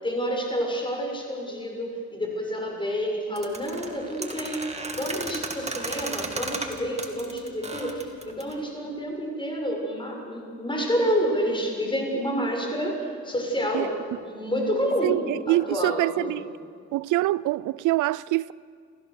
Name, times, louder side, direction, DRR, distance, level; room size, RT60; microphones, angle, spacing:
voice 1, 0.0-13.9 14.2-15.2 15.5-16.4, equal, 15° left, 6.6 m, -29 dB
sound 1, 3.4-8.6, right 3 dB, 20° right, 2.5 m, -34 dB
voice 2, 15.0-16.4 16.9-18.5, right 17 dB, 80° right, 0.4 m, -25 dB
29.0 x 15.5 x 6.9 m
cardioid pair, 90°, 30 cm